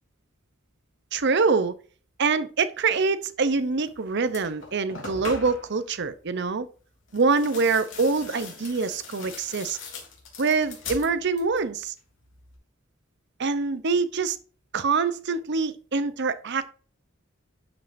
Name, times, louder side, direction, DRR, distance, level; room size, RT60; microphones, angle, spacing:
voice 1, 1.1-1.7 2.2-6.7 7.1-9.8 10.4-11.9 13.4-14.4 14.7-16.7, right 4 dB, 60° right, 0.7 m, -25 dB
sound 1, 3.8-3.9 4.3-5.7 7.1-11.7 12.0-12.6, left 4 dB, 65° left, 3.3 m, -41 dB
11.5 x 5.4 x 2.6 m
head